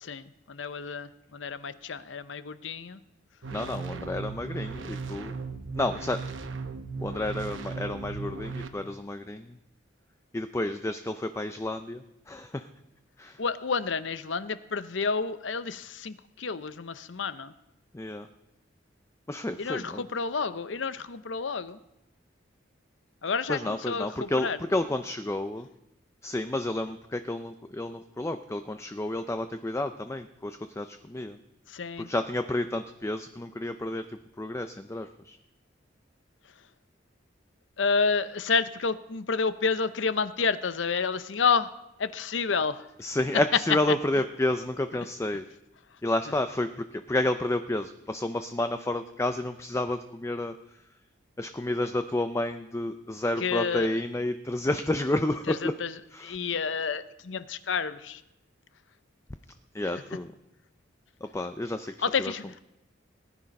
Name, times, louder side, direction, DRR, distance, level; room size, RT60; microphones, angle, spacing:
voice 1, 0.0-3.0 13.4-17.5 19.6-21.8 23.2-23.6 23.9-24.6 31.7-32.1 37.8-41.7 42.0-42.9 53.4-53.9 55.5-55.9 56.2-58.2 62.0-62.4, left 5 dB, 70° left, 14 dB, 0.7 m, -29 dB
sound 1, 3.4-8.7, right 4 dB, 85° right, 1.0 m, -37 dB
voice 2, 3.5-5.4 5.8-6.2 7.0-9.6 10.3-12.7 13.2-13.4 17.9-18.3 19.3-20.0 23.5-25.7 26.2-31.4 32.0-34.0 34.4-35.4 43.0-45.4 46.0-50.8 51.4-55.7 56.1-56.4 59.7-60.3 61.2-61.9 62.2-62.4, left 1 dB, 15° left, 9 dB, 0.5 m, -30 dB
18.5 x 10.0 x 5.3 m, 0.89 s
head